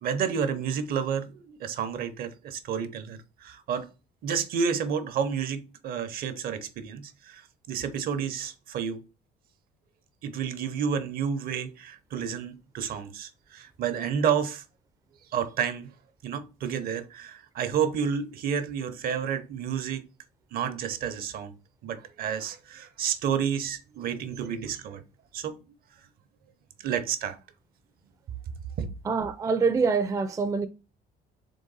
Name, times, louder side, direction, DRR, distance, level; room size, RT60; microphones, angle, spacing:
voice 1, 0.0-3.9 4.2-9.0 10.2-14.6 15.3-15.9 16.2-20.1 20.5-21.5 21.8-25.0 25.3-25.6 26.8-27.4 28.8-28.9, right 7 dB, 65° right, 0.7 m, -30 dB
voice 2, 29.1-30.7, right 4 dB, 20° right, 0.4 m, -25 dB
3.8 x 3.3 x 3.9 m
cardioid pair, 110°, 17 cm